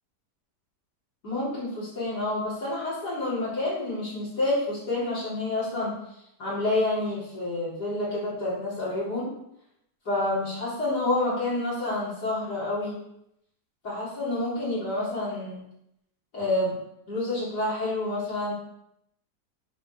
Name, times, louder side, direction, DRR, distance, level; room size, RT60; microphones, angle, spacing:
voice 1, 1.2-5.9 6.4-9.3 10.0-13.0 13.8-15.6 16.3-16.8 17.1-18.5, left 2 dB, 65° left, -10 dB, 4.5 m, -28 dB
7.6 x 5.3 x 6.9 m, 0.79 s
omnidirectional pair, 1.8 m